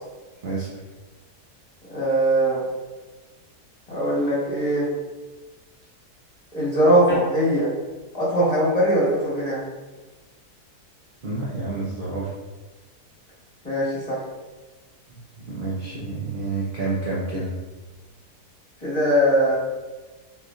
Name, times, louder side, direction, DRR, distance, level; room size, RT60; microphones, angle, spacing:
voice 1, 1.9-2.6 3.9-4.9 6.5-7.7 8.1-9.6 13.6-14.2 18.8-19.6, right 1 dB, 25° left, -8 dB, 1.3 m, -21 dB
voice 2, 11.2-12.3 15.1-15.2 15.5-17.5, right 3 dB, 65° right, -6 dB, 0.5 m, -29 dB
3.6 x 3.0 x 2.5 m, 1.2 s
omnidirectional pair, 1.7 m